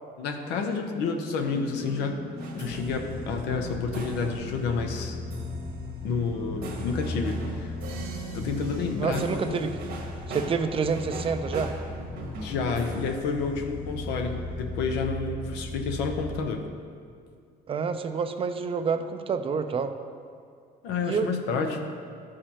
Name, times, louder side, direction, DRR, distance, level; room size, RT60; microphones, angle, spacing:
voice 1, 0.2-2.2 2.5-5.2 6.0-7.8 8.3-9.7 12.4-16.7 20.8-21.8, left 4 dB, 90° left, 4 dB, 0.8 m, -30 dB
sound 1, 1.5-10.8, equal, 65° left, 1.6 m, -41 dB
sound 2, 2.4-14.2, right 3 dB, 70° right, 1.3 m, -43 dB
sound 3, 2.6-16.4, left 2 dB, 40° left, 0.7 m, -37 dB
voice 2, 9.0-9.8 10.3-11.7 17.7-19.9 21.0-21.3, right 5 dB, 35° right, 9 dB, 0.5 m, -28 dB
12.0 x 5.0 x 2.8 m, 2.3 s
cardioid pair, 110°, 17 cm